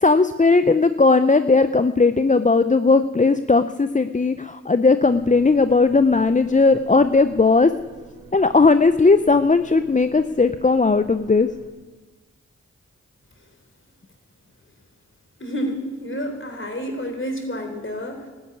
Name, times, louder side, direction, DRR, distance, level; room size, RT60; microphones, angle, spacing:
voice 1, 0.0-7.7 8.3-11.5, left 3 dB, 25° left, 11 dB, 0.6 m, -17 dB
sound 1, 5.1-11.7, right 2 dB, 85° right, 2.9 m, -46 dB
voice 2, 15.4-18.3, equal, 40° left, 5 dB, 3.7 m, -29 dB
13.0 x 9.6 x 9.7 m, 1.3 s
cardioid pair, 40°, 31 cm